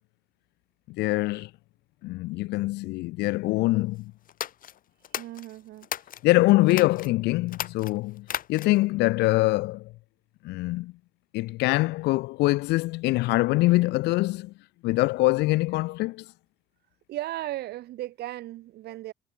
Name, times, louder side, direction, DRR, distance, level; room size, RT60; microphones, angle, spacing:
voice 1, 0.9-1.5 2.0-4.1 6.2-9.9 10.4-10.9 11.3-14.5 14.8-16.2, left 20 dB, 85° left, 1.1 m, -24 dB
sound 1, 4.3-6.2 6.7-7.1 7.5-8.9, left 10 dB, 55° left, 2.5 m, -36 dB
voice 2, 5.2-5.9 17.1-19.1, right 15 dB, 75° right, 2.2 m, -36 dB
cardioid pair, 110°, 17 cm